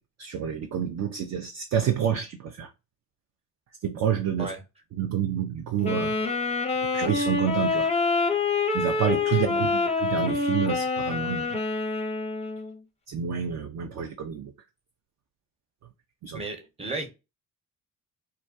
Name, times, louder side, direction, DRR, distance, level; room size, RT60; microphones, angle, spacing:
voice 1, 0.2-2.7 3.8-4.5 4.9-6.2 6.9-7.9 8.7-11.6 13.1-14.5 16.2-16.4, right 8 dB, 40° right, 0.4 m, -28 dB
Wind instrument woodwind instrument, 5.8-12.8, left 3 dB, 15° left, 0.6 m, -26 dB
voice 2, 16.3-17.1, right 2 dB, 15° right, 0.9 m, -34 dB
2.3 x 2.1 x 2.6 m
hypercardioid pair, 50°, 44 cm